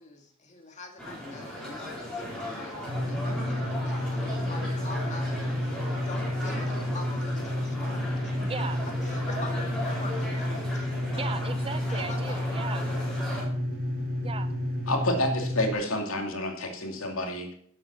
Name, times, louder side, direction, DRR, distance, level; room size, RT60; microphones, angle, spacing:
voice 1, 0.0-8.7 9.0-11.2 11.9-12.4, left 2 dB, 35° left, 3 dB, 2.2 m, -45 dB
sound 1, 1.0-13.4, left 1 dB, 5° left, 4.4 m, -37 dB
sound 2, 2.9-15.7, left 1 dB, 50° right, 5.5 m, -30 dB
voice 2, 8.4-8.8 11.2-12.9 14.2-14.5, right 4 dB, 25° right, 10 dB, 0.7 m, -36 dB
voice 3, 14.9-17.5, left 1 dB, 70° left, 3 dB, 2.4 m, -29 dB
12.0 x 7.7 x 6.3 m, 0.62 s
head